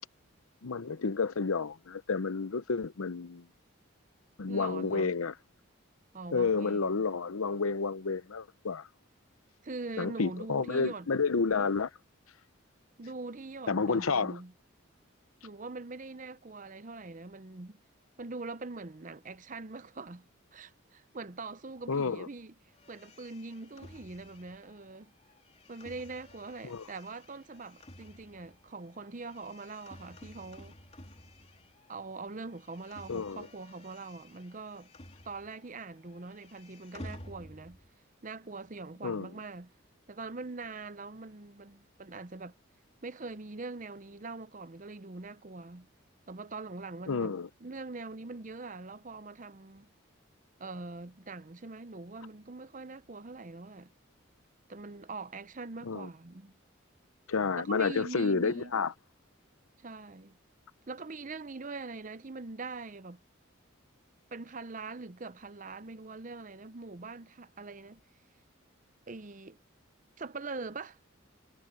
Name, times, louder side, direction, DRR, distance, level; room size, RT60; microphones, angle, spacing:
voice 1, 0.6-3.5 4.4-5.3 6.3-8.9 10.0-11.9 13.7-14.4 21.9-22.3 26.6-26.9 33.1-33.5 39.0-39.3 47.1-47.5 55.8-56.1 57.3-58.9, left 4 dB, 85° left, 0.7 m, -30 dB
voice 2, 4.5-5.1 6.1-6.9 9.6-11.1 13.0-14.5 15.4-17.8 18.2-22.5 22.9-25.1 25.7-30.8 31.9-34.9 35.2-37.8 38.2-39.7 40.1-42.5 43.0-45.9 46.3-49.9 50.6-53.9 54.7-56.5 57.6-58.7 59.8-60.4 60.9-63.2 64.3-68.0 69.1-69.6 70.2-71.0, right 3 dB, 40° right, 0.7 m, -43 dB
sound 1, 22.8-32.0 32.3-35.8 36.0-37.9, left 1 dB, 30° left, 3.7 m, -52 dB
head